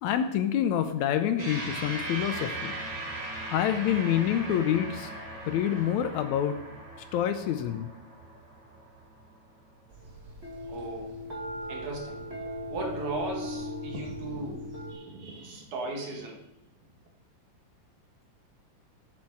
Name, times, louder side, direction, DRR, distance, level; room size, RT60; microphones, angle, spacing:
voice 1, 0.0-2.7 3.5-5.1 5.5-6.6 7.1-7.9, left 10 dB, 75° left, 8 dB, 1.9 m, -27 dB
sound 1, 1.4-10.1, right 2 dB, 45° right, 3.5 m, -39 dB
sound 2, 9.9-14.9, left 1 dB, 25° right, 1.9 m, -38 dB
voice 2, 10.7-11.2 11.7-12.2 12.7-16.4, right 2 dB, 70° right, 0 dB, 3.2 m, -37 dB
10.5 x 8.6 x 4.7 m, 0.89 s
omnidirectional pair, 3.6 m